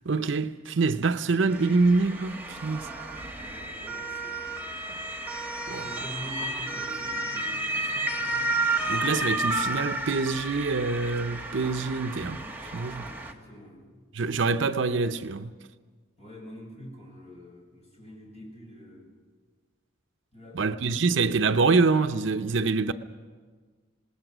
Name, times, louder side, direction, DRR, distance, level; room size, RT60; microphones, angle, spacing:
voice 1, 0.1-2.9 5.7-5.8 8.9-12.4 12.7-13.0 14.1-15.5 20.5-22.9, right 4 dB, 65° right, 0.7 m, -25 dB
Motor vehicle (road) / Siren, 1.5-13.3, right 2 dB, 10° right, 1.3 m, -32 dB
voice 2, 3.3-4.6 5.8-8.5 12.9-14.1 16.2-19.1 20.3-20.8, equal, 35° left, 7.3 m, -46 dB
27.0 x 19.0 x 6.2 m
head